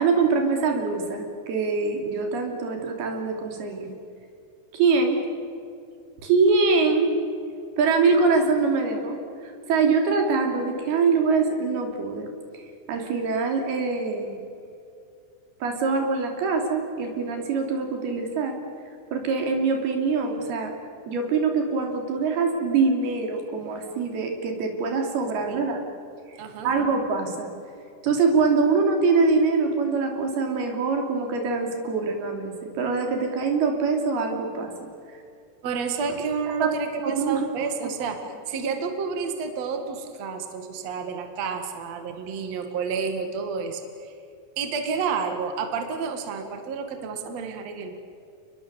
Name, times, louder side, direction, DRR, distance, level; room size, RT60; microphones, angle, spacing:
voice 1, 0.0-3.9 4.7-5.2 6.2-7.1 7.8-12.3 12.9-14.4 15.6-18.6 19.1-20.7 21.0-25.8 26.3-26.4 26.6-27.5 28.0-34.7 36.6-36.7 37.0-37.5, right 4 dB, 85° right, 3 dB, 5.0 m, -24 dB
voice 2, 26.4-26.7 35.6-38.2 38.5-44.1 44.6-47.9, right 5 dB, 50° right, 6 dB, 2.8 m, -30 dB
30.0 x 21.5 x 7.1 m, 2.5 s
omnidirectional pair, 4.4 m